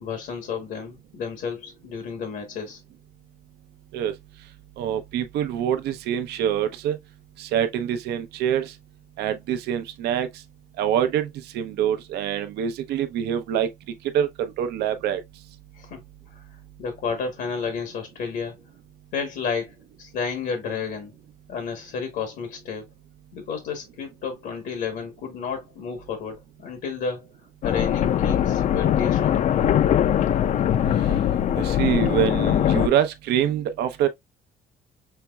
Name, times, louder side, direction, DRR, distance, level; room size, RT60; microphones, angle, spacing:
voice 1, 0.0-2.8 15.7-16.0 16.3-18.6 19.1-21.1 21.5-22.9 23.3-27.3 27.6-29.5, left 5 dB, 75° left, 1.1 m, -32 dB
voice 2, 4.8-7.0 7.4-8.7 9.2-10.3 10.8-11.3 11.5-13.7 14.1-15.2 31.6-34.1, right 9 dB, 80° right, 0.7 m, -25 dB
sound 1, 27.6-32.9, left 10 dB, 45° left, 0.4 m, -21 dB
5.7 x 3.0 x 2.2 m
cardioid pair, 110°, 17 cm